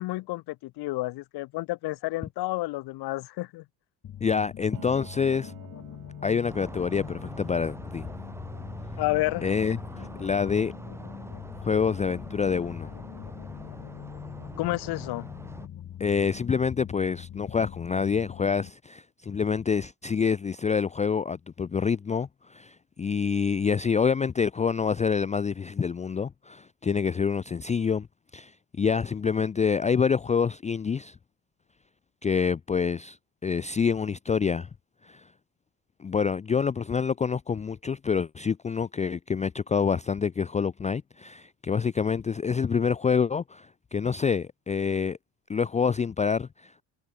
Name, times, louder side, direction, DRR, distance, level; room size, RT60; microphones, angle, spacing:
voice 1, 0.0-3.6 9.0-9.5 14.6-15.3, left 19 dB, 65° left, 1.1 m, -30 dB
sound 1, 4.0-18.7, left 10 dB, 40° left, 1.6 m, -43 dB
voice 2, 4.2-5.5 6.2-8.1 9.4-10.7 11.6-12.9 16.0-28.1 28.3-28.5 28.8-31.2 32.2-33.2 33.4-34.7 35.0-35.3 36.0-45.2 45.5-46.8, left 6 dB, 15° left, 0.5 m, -27 dB
Piano, 4.7-14.3, right 23 dB, 85° right, 5.7 m, -55 dB
sound 2, 6.5-15.7, right 1 dB, 5° right, 7.2 m, -42 dB
cardioid pair, 130°, 41 cm